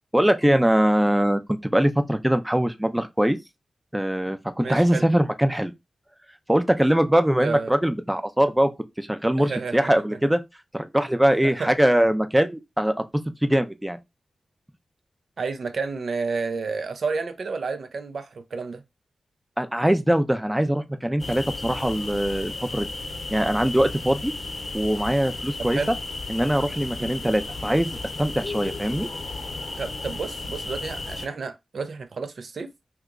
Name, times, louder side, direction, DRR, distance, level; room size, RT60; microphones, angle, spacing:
voice 1, 0.1-3.4 3.9-5.7 6.5-8.7 9.0-10.4 10.7-13.0 13.4-14.0 19.6-22.9 23.3-24.3 24.7-25.8 26.3-29.1, equal, 10° right, 0.4 m, -22 dB
voice 2, 4.6-5.0 7.4-7.7 9.4-9.9 11.4-11.5 15.4-18.8 25.6-25.9 27.0-27.1 29.8-32.7, right 4 dB, 70° right, 0.4 m, -30 dB
sound 1, 21.2-31.3, left 3 dB, 50° left, 0.7 m, -34 dB
2.9 x 2.3 x 3.6 m
cardioid pair, 70°, 0 cm